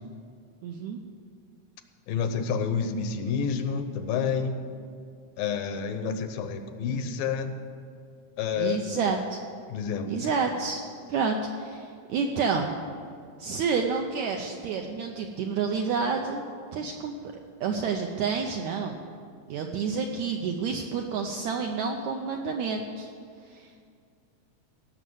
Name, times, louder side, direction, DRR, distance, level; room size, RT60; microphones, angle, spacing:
voice 1, 0.6-1.0 8.6-9.4 10.0-10.8 11.1-12.8 13.4-16.4 16.7-17.3 17.6-19.0 19.5-23.1 23.5-23.8, right 5 dB, 80° right, 3 dB, 1.7 m, -29 dB
voice 2, 2.1-4.6 5.4-7.6 8.4-9.1 9.7-10.3, left 6 dB, 80° left, 8 dB, 2.6 m, -29 dB
16.5 x 6.4 x 7.9 m, 2.2 s
omnidirectional pair, 4.0 m